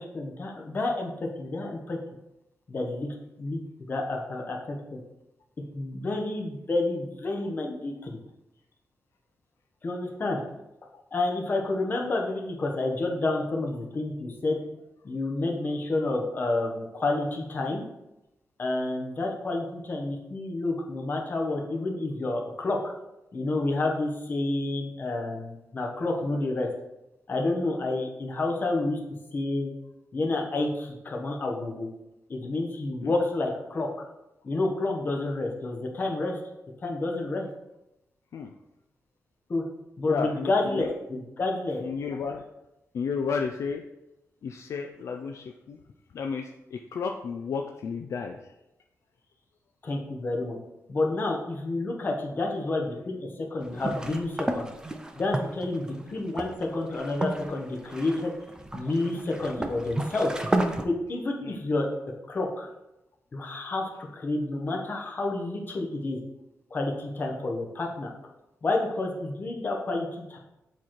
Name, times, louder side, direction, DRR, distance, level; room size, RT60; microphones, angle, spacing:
voice 1, 0.0-2.0 2.7-3.1 3.4-3.6 3.9-5.0 5.7-8.2 9.8-10.4 11.1-14.6 15.0-17.8 18.6-22.8 23.3-26.7 27.3-29.0 29.3-29.7 30.1-31.9 32.3-33.9 34.4-36.4 36.8-37.5 39.5-39.6 40.0-41.8 49.8-50.6 50.9-54.7 55.2-58.3 58.7-60.3 60.8-61.9 62.3-62.7 63.3-66.2 66.7-68.1 68.6-70.4, left 2 dB, 35° left, 1 dB, 1.0 m, -29 dB
voice 2, 40.1-40.9 41.8-42.4 42.9-43.8 44.4-45.8 46.1-48.4 61.4-61.6, left 5 dB, 65° left, 4 dB, 0.4 m, -32 dB
sound 1, 53.6-60.8, right 1 dB, 15° right, 0.5 m, -32 dB
7.1 x 3.1 x 4.3 m, 0.91 s
wide cardioid pair, 145°, 5 cm